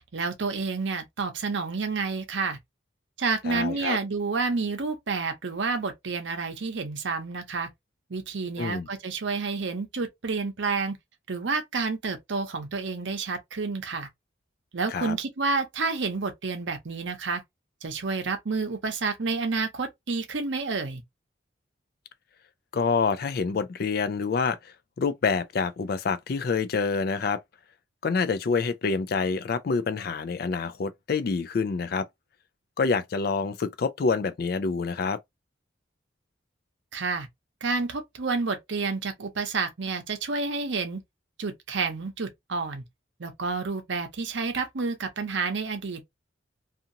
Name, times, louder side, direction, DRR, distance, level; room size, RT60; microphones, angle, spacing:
voice 1, 0.1-2.6 3.2-7.7 8.1-11.0 11.3-14.1 14.7-17.4 17.8-21.0 36.9-37.3 37.6-41.0 41.4-42.8 43.2-46.0, right 4 dB, 70° right, 0.7 m, -29 dB
voice 2, 3.5-4.0 8.6-8.9 14.9-15.2 22.7-27.4 28.0-32.1 32.8-35.2, left 4 dB, 50° left, 0.3 m, -27 dB
2.8 x 2.5 x 2.5 m
head